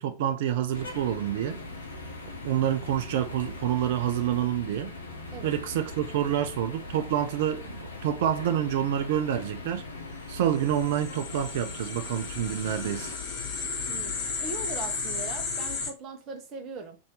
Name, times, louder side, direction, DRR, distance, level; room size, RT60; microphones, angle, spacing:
voice 1, 0.0-1.6 2.4-4.9 5.4-9.8 10.3-13.1, right 10 dB, 55° right, 0.3 m, -28 dB
sound 1, 0.7-13.2, left 2 dB, 70° left, 0.6 m, -41 dB
sound 2, 10.6-15.9, left 4 dB, 45° left, 1.1 m, -34 dB
voice 2, 13.9-17.0, right 3 dB, 35° right, 0.8 m, -40 dB
2.7 x 2.6 x 3.1 m
figure-of-eight pair, 90°, 0 cm